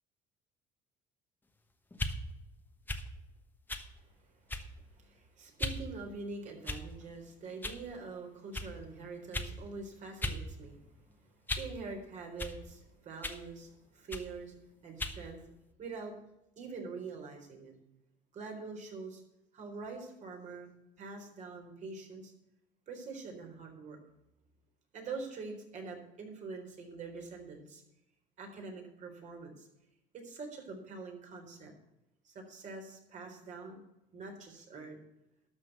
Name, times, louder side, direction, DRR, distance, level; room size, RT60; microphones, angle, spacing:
sound 1, 1.9-2.2 2.9-3.1 3.7-3.9 4.5-4.8 5.6-5.8 6.6-7.0 7.6-7.8 8.5-8.7 9.3-9.5 10.2-10.4 10.8-11.8 12.4-12.6 13.2-13.4 14.1-14.3 15.0-15.2, left 2 dB, 10° left, 1.2 m, -37 dB
voice 1, 4.0-14.6 14.8-15.5 15.8-16.1 16.6-17.8 18.3-19.2 19.5-20.7 21.0-22.3 22.9-24.0 24.9-27.8 28.4-29.7 30.1-31.7 32.2-33.8 34.1-35.0, right 4 dB, 50° right, 2 dB, 4.1 m, -45 dB
12.5 x 6.4 x 8.0 m, 0.89 s
cardioid pair, 115°, 16 cm